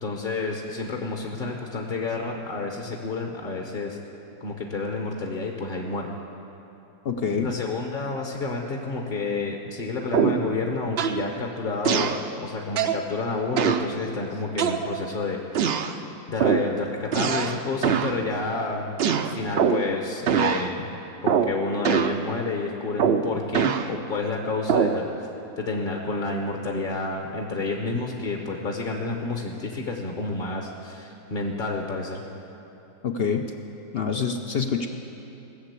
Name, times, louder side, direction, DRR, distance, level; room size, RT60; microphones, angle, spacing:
voice 1, 0.0-4.0 4.4-6.2 7.3-12.2 12.4-15.9 16.3-20.9 21.2-25.1 25.6-32.2, left 3 dB, 40° left, 1 dB, 1.0 m, -30 dB
voice 2, 7.0-7.5 33.0-33.5 33.9-34.9, left 6 dB, 55° left, 5 dB, 0.6 m, -26 dB
sound 1, 10.1-10.5 11.0-11.2 11.8-12.2 12.8-13.0 13.6-13.9 14.6-15.1 15.5-15.9 16.4-16.7 17.1-17.6 17.8-18.2 19.0-19.9 20.3-20.7 21.3-21.6 21.8-22.2 23.0-23.9 24.7-25.0, right 7 dB, 60° right, 0.6 m, -23 dB
18.5 x 7.1 x 8.2 m, 2.9 s
omnidirectional pair, 1.7 m